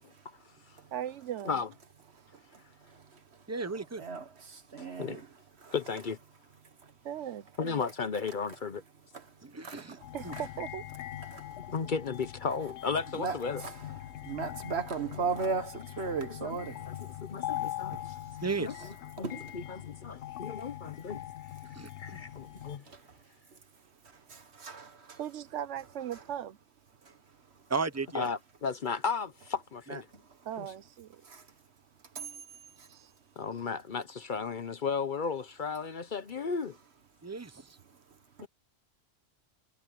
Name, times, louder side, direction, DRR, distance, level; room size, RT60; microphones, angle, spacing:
voice 1, 0.9-1.6 7.0-7.8 10.1-10.9 25.2-26.6 30.4-31.2 32.9-33.1, right 10 dB, 85° right, 1.1 m, -38 dB
voice 2, 2.5-3.2 4.0-5.3 5.6-5.7 6.8-6.9 9.1-9.3 9.6-10.1 11.3-11.6 13.2-13.8 14.2-16.9 17.6-18.1 19.2-19.5 22.9-23.1 24.1-25.2 27.0-27.2 30.1-30.2 31.2-31.5 32.2-32.4 32.8-32.9, right 5 dB, 65° right, 1.8 m, -37 dB
voice 3, 3.5-4.0 9.4-10.0 10.2-10.3 18.4-18.9 21.7-22.2 27.7-28.3 29.9-30.0 37.2-37.8, right 4 dB, 15° right, 1.0 m, -35 dB
voice 4, 4.8-5.2 5.7-6.2 7.6-8.8 11.7-13.6 15.4-15.6 16.4-16.6 16.9-18.2 18.6-18.7 19.2-19.3 19.5-21.2 22.0-22.8 28.1-30.1 30.6-30.7 33.4-36.8, left 5 dB, 50° left, 0.9 m, -34 dB
sound 1, 10.0-22.8, left 13 dB, 80° left, 0.9 m, -42 dB
omnidirectional pair, 1.2 m